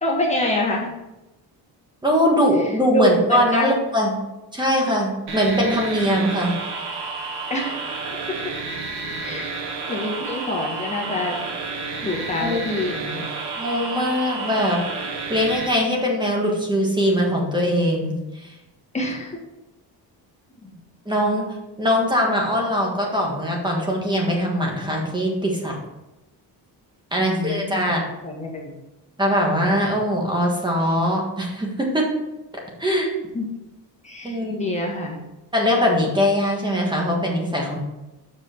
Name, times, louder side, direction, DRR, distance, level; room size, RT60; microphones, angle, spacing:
voice 1, 0.0-0.9 2.6-3.8 7.5-7.8 9.2-9.5 9.9-11.4 12.0-13.3 18.9-19.4 20.6-20.7 27.2-28.7 33.3-33.5 34.0-35.2, left 1 dB, 15° left, -2 dB, 1.7 m, -26 dB
voice 2, 2.0-4.1 4.5-6.6 12.4-12.6 13.6-14.8 15.3-18.5 21.0-21.5 21.8-25.8 27.1-28.0 29.2-32.0 32.8-33.1 34.2-34.6 35.5-37.8, equal, 10° right, -1 dB, 1.6 m, -21 dB
sound 1, 5.3-15.7, right 4 dB, 75° right, 1.4 m, -31 dB
7.2 x 6.0 x 4.5 m, 0.99 s
cardioid pair, 165°, 41 cm